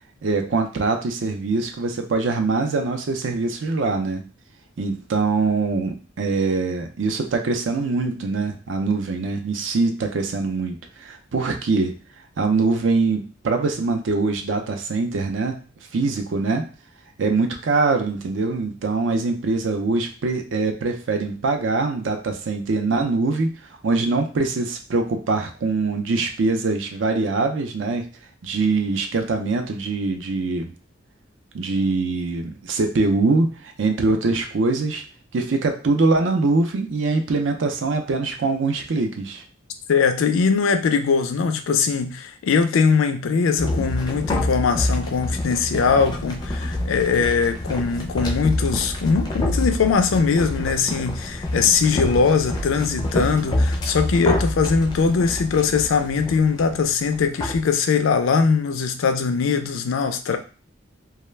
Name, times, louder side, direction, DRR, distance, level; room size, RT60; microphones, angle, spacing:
voice 1, 0.2-4.3 4.8-12.0 12.4-15.6 15.9-16.7 17.2-23.5 23.8-28.1 28.4-30.7 31.5-35.0 35.3-39.4, right 3 dB, 70° right, 5 dB, 0.4 m, -23 dB
voice 2, 39.9-60.4, left 5 dB, 90° left, 7 dB, 0.4 m, -21 dB
sound 1, 43.6-57.6, left 1 dB, 20° left, 0.4 m, -27 dB
2.3 x 2.1 x 3.1 m, 0.38 s
head